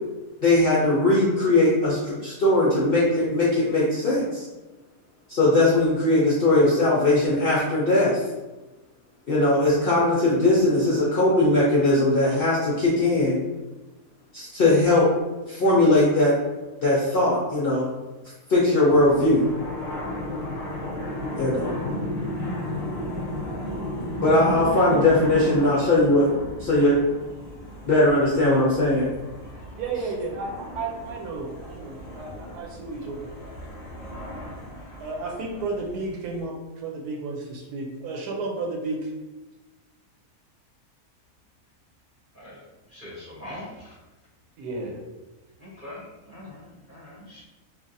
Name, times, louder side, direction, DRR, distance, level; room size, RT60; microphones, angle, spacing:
voice 1, 0.4-4.4 5.3-8.2 9.3-13.4 14.3-15.1 15.5-16.3 16.8-17.9 18.5-19.4 21.4-21.8 24.2-26.3 26.6-27.0 27.9-29.1, left 2 dB, 65° left, -6 dB, 0.5 m, -20 dB
sound 1, 18.9-36.4, equal, 15° left, 1.0 m, -34 dB
voice 2, 29.8-33.5 35.0-39.1 44.6-45.0, right 3 dB, 85° right, 0 dB, 1.2 m, -32 dB
voice 3, 42.9-43.7 45.6-47.4, left 1 dB, 40° right, -7 dB, 0.8 m, -42 dB
3.2 x 2.4 x 2.5 m, 1.1 s
omnidirectional pair, 1.7 m